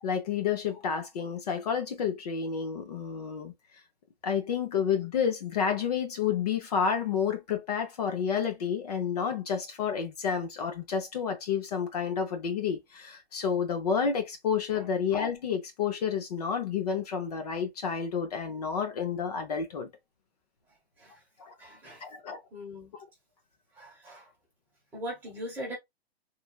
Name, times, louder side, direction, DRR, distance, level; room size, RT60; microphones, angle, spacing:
voice 1, 0.0-3.5 4.2-19.9 21.4-21.5 22.0-22.4, left 7 dB, 40° left, 0.6 m, -30 dB
voice 2, 21.6-22.0 22.5-22.9 23.7-24.3 24.9-25.7, equal, 5° right, 1.1 m, -40 dB
3.2 x 2.2 x 2.3 m
hypercardioid pair, 165°, 32 cm